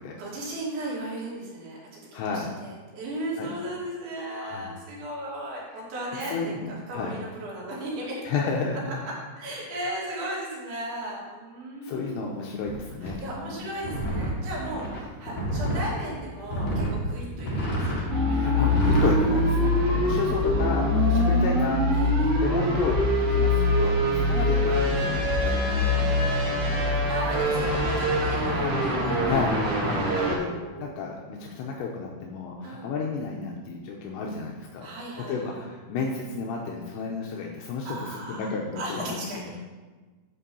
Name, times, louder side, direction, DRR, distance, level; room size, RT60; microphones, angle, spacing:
voice 1, 0.2-8.4 9.0-12.2 13.0-18.1 20.1-20.7 21.9-22.3 24.1-24.4 27.1-29.3 29.9-31.0 32.6-32.9 34.8-35.6 37.9-39.4, right 1 dB, 75° right, -5 dB, 4.8 m, -36 dB
voice 2, 2.1-2.5 3.4-3.5 4.4-4.7 6.3-7.2 8.3-8.9 11.8-13.6 18.3-21.8 22.4-27.0 29.2-30.5 30.8-34.9 35.2-39.6, left 4 dB, 80° left, -1 dB, 2.9 m, -32 dB
sound 1, 12.7-12.8 13.0-13.1 13.8-15.9 16.5-16.9 17.3-18.0 18.6-19.1 19.6-20.2, right 1 dB, 45° left, 1.8 m, -29 dB
sound 2, 18.1-30.3, left 1 dB, 50° right, 2.8 m, -23 dB
10.5 x 4.6 x 6.9 m, 1.3 s
omnidirectional pair, 5.3 m